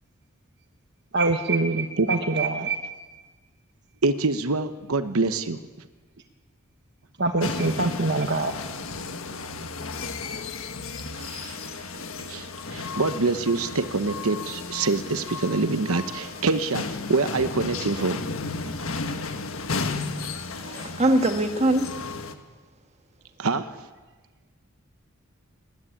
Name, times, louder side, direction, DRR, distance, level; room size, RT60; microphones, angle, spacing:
voice 1, 1.1-3.1 7.2-8.5, right 3 dB, 55° right, 6 dB, 1.1 m, -24 dB
voice 2, 4.0-5.6 11.1-18.2 23.4-23.7, right 3 dB, 85° right, 10 dB, 1.0 m, -26 dB
sound 1, 7.4-22.3, left 4 dB, 70° left, 1.5 m, -34 dB
voice 3, 20.6-21.9, right 1 dB, 30° right, 6 dB, 1.6 m, -22 dB
19.5 x 14.0 x 10.0 m, 1.3 s
head